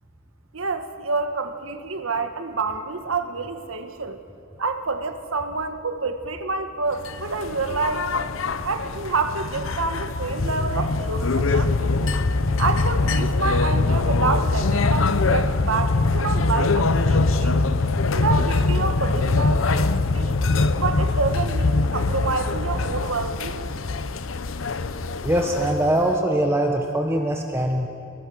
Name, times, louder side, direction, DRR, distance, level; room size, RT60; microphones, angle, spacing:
voice 1, 0.5-4.2 4.6-8.1 8.6-12.1 12.6-17.6 18.1-19.9 20.1-20.4 20.8-23.7, right 4 dB, 90° right, 7 dB, 1.5 m, -28 dB
sound 1, 7.0-26.2, left 3 dB, 70° left, 0.8 m, -23 dB
voice 2, 25.2-27.9, right 1 dB, 15° right, 2 dB, 1.2 m, -22 dB
29.0 x 18.5 x 6.3 m, 2.4 s
head